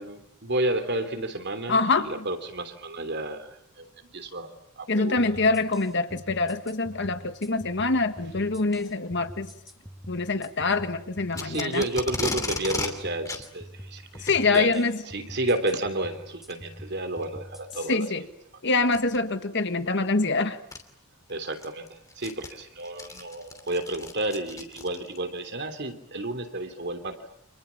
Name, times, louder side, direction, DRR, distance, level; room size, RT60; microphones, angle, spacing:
voice 1, 0.0-3.9 4.1-5.2 11.3-18.1 21.3-27.2, right 1 dB, 50° right, 8 dB, 3.3 m, -31 dB
voice 2, 1.7-2.1 4.9-9.5 10.1-11.8 14.2-15.0 17.9-18.2 18.6-20.6, left 3 dB, 55° left, 9 dB, 1.7 m, -25 dB
sound 1, 5.2-17.9, equal, ahead, 2.2 m, -45 dB
Packing tape duct tape, 11.3-12.9 13.3-13.4 14.1-14.4 15.6-15.8 16.5-16.6 17.2-17.3 18.9-19.2 20.2-20.3 20.7-20.8 21.3-25.2, left 3 dB, 15° left, 2.8 m, -34 dB
30.0 x 27.5 x 7.2 m, 0.70 s
head